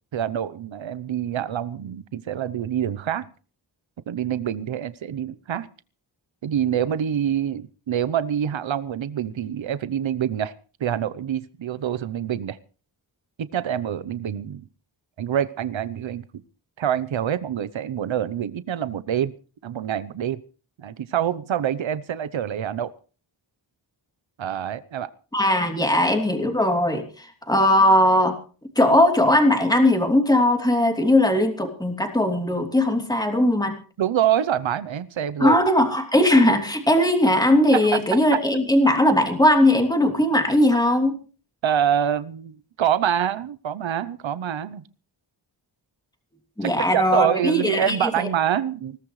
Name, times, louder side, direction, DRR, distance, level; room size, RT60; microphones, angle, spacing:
voice 1, 0.1-3.3 4.1-5.7 6.4-10.5 10.8-12.6 13.4-14.6 15.2-16.2 16.8-19.3 19.6-20.4 20.8-22.9 24.4-25.1 34.0-35.6 37.7-38.0 41.6-44.8 46.6-49.0, right 9 dB, 80° right, 15 dB, 0.9 m, -26 dB
voice 2, 25.3-28.4 28.8-33.7 35.4-41.2 46.6-48.3, left 1 dB, 10° left, 4 dB, 3.0 m, -19 dB
21.0 x 17.5 x 3.2 m, 0.38 s
wide cardioid pair, 125°, 46 cm